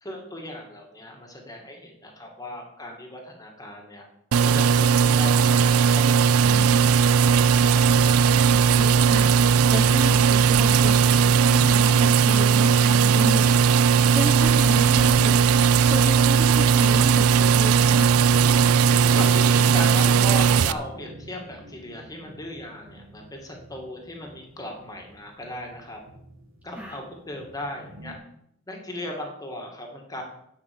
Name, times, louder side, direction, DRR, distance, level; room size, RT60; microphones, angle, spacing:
voice 1, 0.0-4.0 4.4-7.7 18.9-26.0 26.6-28.2 28.7-30.2, left 1 dB, 15° left, 2 dB, 2.2 m, -37 dB
sound 1, 4.3-20.7, right 6 dB, 85° right, 0.4 m, -18 dB
voice 2, 8.5-15.5 15.9-18.1 26.7-27.0, equal, 5° right, 1 dB, 0.9 m, -33 dB
sound 2, 17.1-28.2, equal, 70° right, 1.9 m, -43 dB
10.0 x 6.1 x 8.6 m, 0.75 s
head